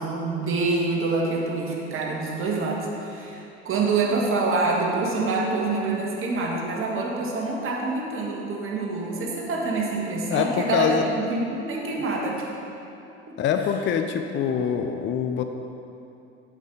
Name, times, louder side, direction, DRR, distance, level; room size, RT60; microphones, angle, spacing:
voice 1, 0.0-12.5 13.3-13.4, right 3 dB, 40° right, -2 dB, 1.8 m, -26 dB
voice 2, 10.3-11.1 13.4-15.4, left 7 dB, 35° left, 6 dB, 0.6 m, -24 dB
8.2 x 7.1 x 4.0 m, 2.8 s
hypercardioid pair, 70°, 34 cm